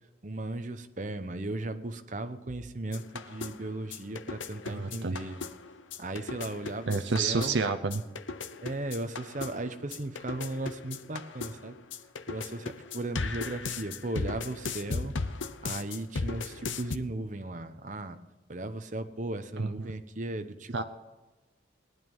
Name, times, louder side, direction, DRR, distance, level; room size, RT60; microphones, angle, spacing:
voice 1, 0.2-5.4 6.0-7.6 8.6-11.8 12.3-15.3 15.6-18.2 18.5-20.8, right 2 dB, 40° right, 9 dB, 0.9 m, -36 dB
sound 1, 2.9-17.0, left 4 dB, 85° left, 0.8 m, -37 dB
voice 2, 4.7-5.2 6.9-8.0 19.6-19.9 20.7-20.8, right 4 dB, 75° right, 6 dB, 0.7 m, -29 dB
18.5 x 11.0 x 5.5 m, 1.2 s
head